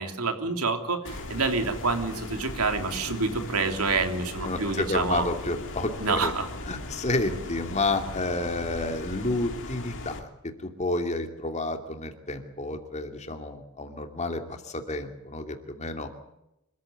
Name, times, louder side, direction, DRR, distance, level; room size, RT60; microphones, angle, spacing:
voice 1, 0.0-5.2 6.0-6.5, right 4 dB, 75° right, 6 dB, 3.2 m, -27 dB
sound 1, 1.0-10.2, left 2 dB, 60° left, 3.2 m, -38 dB
voice 2, 4.4-6.3 6.7-10.3 10.6-16.1, left 2 dB, 30° left, 6 dB, 2.7 m, -30 dB
26.0 x 14.5 x 9.5 m, 0.87 s
head